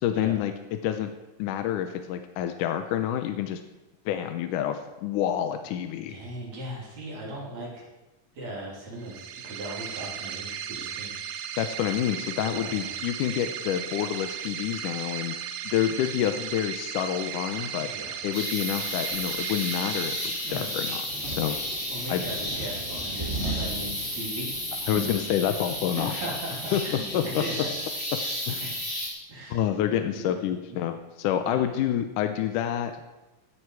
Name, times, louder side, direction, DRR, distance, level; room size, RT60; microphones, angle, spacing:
voice 1, 0.0-1.1 1.4-3.6 4.1-6.2 11.6-15.4 15.6-17.9 18.2-21.6 22.1-22.2 24.9-26.3 26.7-26.8 27.1-27.4 28.5-28.6 29.5-32.9, left 10 dB, 80° left, 7 dB, 2.2 m, -28 dB
voice 2, 6.1-7.8 8.3-11.1 12.5-12.9 17.8-18.2 20.4-20.7 21.9-24.6 26.0-27.7 28.2-29.0 29.3-29.6 30.1-30.8 31.4-31.6, right 1 dB, 55° right, -3 dB, 4.3 m, -38 dB
sound 1, 9.0-20.9, right 9 dB, 85° right, 2.4 m, -36 dB
sound 2, 18.3-29.1, left 1 dB, 15° left, 4.5 m, -33 dB
sound 3, 20.0-27.5, right 2 dB, 20° right, 2.9 m, -39 dB
16.5 x 9.8 x 4.7 m, 1.0 s
omnidirectional pair, 3.8 m